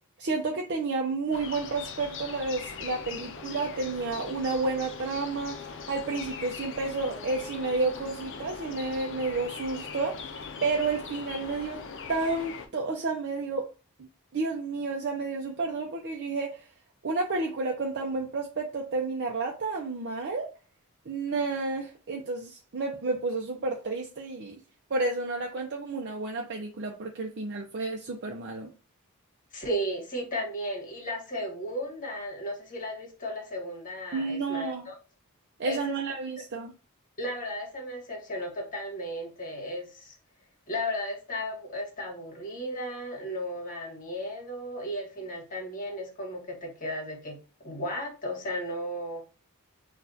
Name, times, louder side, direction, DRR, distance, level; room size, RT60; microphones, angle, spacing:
voice 1, 0.2-10.2 10.6-11.8 12.1-13.7 14.3-16.6 17.0-20.5 21.1-24.6 24.9-28.7 34.1-34.9 35.6-36.7, right 3 dB, 50° right, 0.6 m, -31 dB
sound 1, 1.3-12.7, left 5 dB, 60° left, 0.6 m, -40 dB
voice 2, 29.5-34.9 35.6-36.0 37.2-40.2 40.7-49.2, equal, 40° left, 1.5 m, -35 dB
6.2 x 2.4 x 2.7 m
head